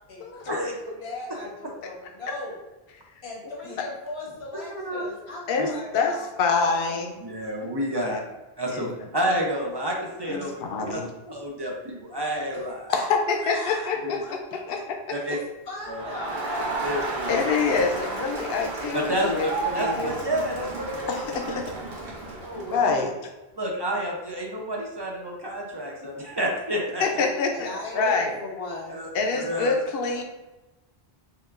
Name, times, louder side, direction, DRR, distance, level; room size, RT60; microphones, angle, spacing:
voice 1, 0.1-2.6 3.2-6.9 12.5-12.6 12.9-13.1 13.4-13.9 14.2-14.3 14.7-14.8 15.3-15.4 15.7-17.2 27.3-29.0, left 2 dB, 85° left, -3 dB, 1.3 m, -38 dB
voice 2, 5.5-7.2 7.9-8.2 8.7-8.8 10.3-11.1 13.1-14.2 14.7-15.2 17.3-20.2 21.1-21.6 22.7-23.1 27.0-28.3 29.1-30.2, left 4 dB, 70° left, 2 dB, 0.8 m, -26 dB
voice 3, 7.2-8.2 8.6-11.0 11.3-12.9 14.0-14.2 15.1-15.4 15.9-16.0 16.8-17.8 18.9-21.6 22.4-23.0 23.6-27.0 28.9-29.8, equal, 35° right, -1 dB, 0.4 m, -30 dB
Crowd, 15.8-22.9, right 3 dB, 65° right, 1.1 m, -32 dB
5.7 x 2.3 x 2.4 m, 1.1 s
omnidirectional pair, 1.0 m